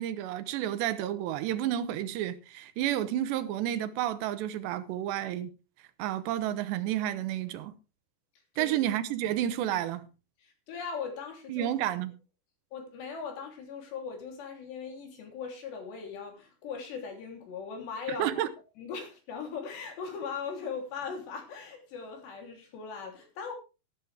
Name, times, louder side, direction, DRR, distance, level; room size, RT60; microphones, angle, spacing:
voice 1, 0.0-5.5 6.0-7.7 8.6-10.1 11.5-12.1 18.2-18.5, right 12 dB, 85° right, 3.1 m, -31 dB
voice 2, 10.4-11.7 12.7-18.4 18.8-23.5, left 6 dB, 75° left, 5.5 m, -39 dB
13.0 x 13.0 x 3.4 m
omnidirectional pair, 5.0 m